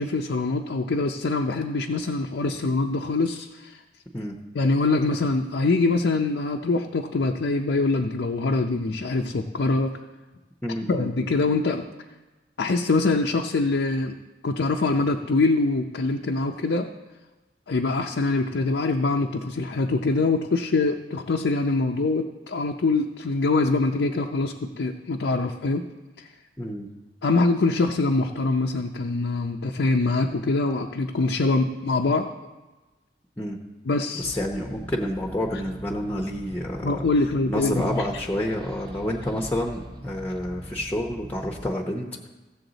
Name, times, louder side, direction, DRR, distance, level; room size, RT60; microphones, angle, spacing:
voice 1, 0.0-3.8 4.5-9.9 10.9-11.8 12.6-14.2 14.4-16.9 17.7-25.8 26.2-26.3 27.2-32.3 33.9-34.2 36.8-38.0, left 3 dB, 85° left, 2 dB, 0.5 m, -24 dB
voice 2, 10.6-11.3 26.6-26.9 33.4-33.6 34.1-37.1 37.5-42.3, left 1 dB, 10° left, 1 dB, 0.7 m, -29 dB
sound 1, 34.2-41.7, equal, 25° right, 0.7 m, -42 dB
15.5 x 7.0 x 4.0 m, 1.2 s
head